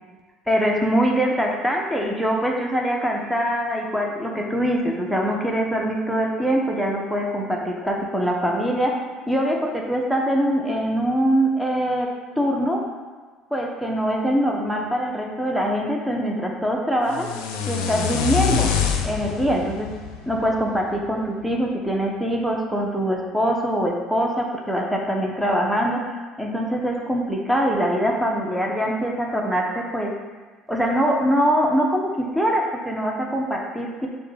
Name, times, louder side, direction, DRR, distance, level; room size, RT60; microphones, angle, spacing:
voice 1, 0.5-9.0 9.3-12.1 12.4-12.9 13.5-17.3 17.7-18.7 19.0-19.9 20.3-26.0 26.4-30.1 30.7-34.1, equal, ahead, -1 dB, 0.8 m, -23 dB
sound 1, 17.1-21.2, left 7 dB, 80° left, 0.4 m, -26 dB
6.7 x 2.3 x 3.3 m, 1.4 s
hypercardioid pair, 65°, 0 cm